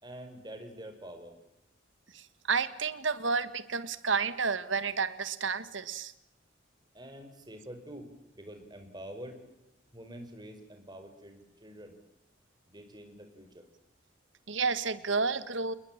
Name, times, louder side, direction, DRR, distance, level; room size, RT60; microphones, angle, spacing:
voice 1, 0.0-1.3 6.9-9.4 9.9-12.0 12.7-13.7, right 1 dB, 20° right, 6 dB, 5.0 m, -46 dB
voice 2, 2.1-6.1 14.5-15.7, right 5 dB, 80° right, 14 dB, 1.7 m, -31 dB
28.5 x 21.0 x 7.4 m, 0.89 s
head